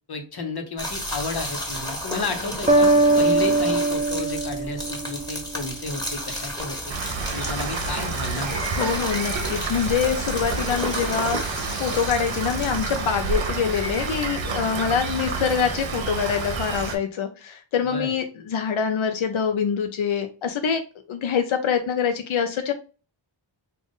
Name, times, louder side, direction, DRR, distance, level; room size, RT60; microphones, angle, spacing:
voice 1, 0.1-6.8 7.3-8.7 17.9-18.1, left 3 dB, 55° left, 5 dB, 0.9 m, -32 dB
sound 1, 0.8-13.0, equal, 10° left, 1.2 m, -33 dB
sound 2, 2.7-5.5, right 2 dB, 15° right, 0.5 m, -21 dB
Rain, 6.9-17.0, right 4 dB, 75° right, 0.8 m, -29 dB
voice 2, 8.8-11.4 11.8-20.8 21.1-22.7, left 7 dB, 90° left, 6 dB, 0.6 m, -25 dB
3.7 x 2.4 x 3.6 m, 0.34 s
wide cardioid pair, 100°, 46 cm